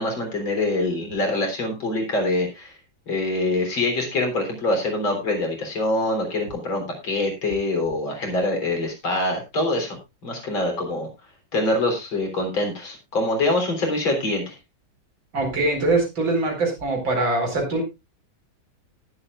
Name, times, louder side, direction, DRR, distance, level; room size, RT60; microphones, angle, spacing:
voice 1, 0.0-2.7 3.1-10.0 10.2-11.1 11.5-14.5, left 2 dB, 75° left, 3 dB, 4.4 m, -24 dB
voice 2, 15.3-17.8, right 2 dB, 75° right, 2 dB, 5.3 m, -23 dB
19.0 x 8.0 x 2.4 m, 0.23 s
omnidirectional pair, 2.2 m